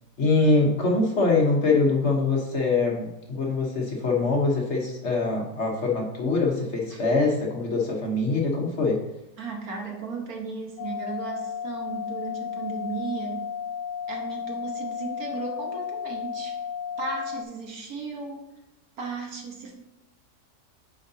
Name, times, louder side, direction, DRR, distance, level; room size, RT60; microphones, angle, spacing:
voice 1, 0.2-9.0, left 3 dB, 45° left, -1 dB, 1.2 m, -23 dB
voice 2, 9.4-13.4 14.1-16.6 17.0-18.5 19.0-19.7, right 4 dB, 60° right, 1 dB, 1.5 m, -35 dB
sound 1, 10.8-17.4, left 7 dB, 80° left, 1.2 m, -33 dB
9.1 x 4.8 x 2.8 m, 0.96 s
omnidirectional pair, 1.8 m